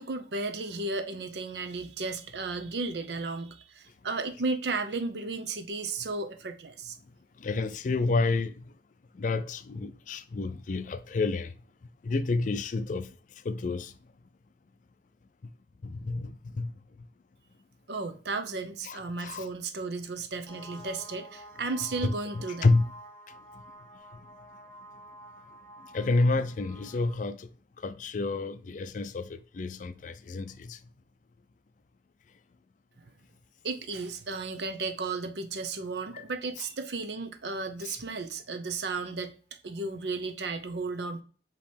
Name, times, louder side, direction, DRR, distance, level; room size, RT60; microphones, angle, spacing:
voice 1, 0.0-7.0 17.9-22.7 33.6-39.3 39.6-41.2, right 3 dB, 75° right, 0.6 m, -34 dB
voice 2, 7.4-8.7 9.1-11.5 12.0-13.1 13.4-13.9 15.8-16.7 18.8-19.5 22.0-22.1 22.6-22.8 25.9-27.5 27.8-30.8 37.8-38.0, left 3 dB, 45° left, 0.4 m, -29 dB
sound 1, 20.5-27.1, right 1 dB, 10° left, 1.9 m, -49 dB
5.2 x 3.0 x 3.3 m
head